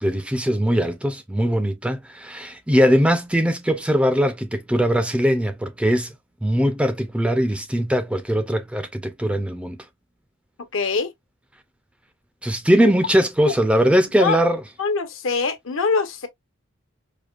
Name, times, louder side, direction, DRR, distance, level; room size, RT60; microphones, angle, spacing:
voice 1, 0.0-6.1 6.4-9.8 12.4-14.6, equal, 5° right, 0.4 m, -20 dB
voice 2, 10.7-11.1 14.2-14.4 14.8-16.3, left 4 dB, 70° left, 0.8 m, -23 dB
5.0 x 2.1 x 2.4 m
head